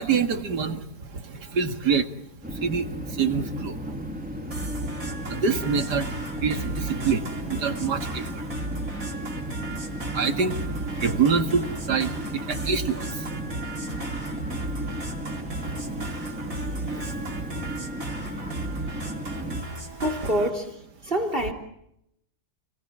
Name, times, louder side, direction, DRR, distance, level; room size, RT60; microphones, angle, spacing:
voice 1, 0.0-2.1 2.4-3.9 4.7-4.9 5.2-8.4 9.1-13.3 14.0-14.4 14.8-14.9 15.5-17.7 19.3-20.0, right 5 dB, 85° right, 7 dB, 2.5 m, -28 dB
sound 1, 2.4-19.6, right 1 dB, 5° right, 2.2 m, -34 dB
sound 2, 4.5-20.5, right 2 dB, 55° right, 4.3 m, -36 dB
voice 2, 20.0-20.8 21.0-21.5, equal, 35° right, 7 dB, 3.6 m, -26 dB
30.0 x 20.0 x 8.7 m, 0.78 s
omnidirectional pair, 1.7 m